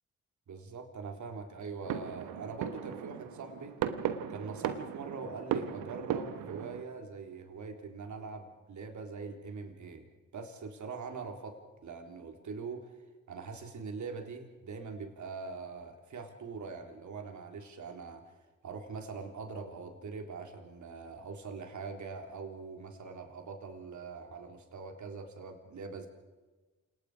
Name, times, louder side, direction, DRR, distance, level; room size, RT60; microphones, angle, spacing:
voice 1, 0.5-3.8 4.3-10.1 10.3-12.9 13.3-18.3 18.6-26.1, right 4 dB, 65° right, 4 dB, 3.8 m, -43 dB
sound 1, 1.8-6.8, right 9 dB, 90° right, 1.2 m, -36 dB
28.0 x 19.5 x 5.0 m, 1.2 s
supercardioid pair, 50°, 32 cm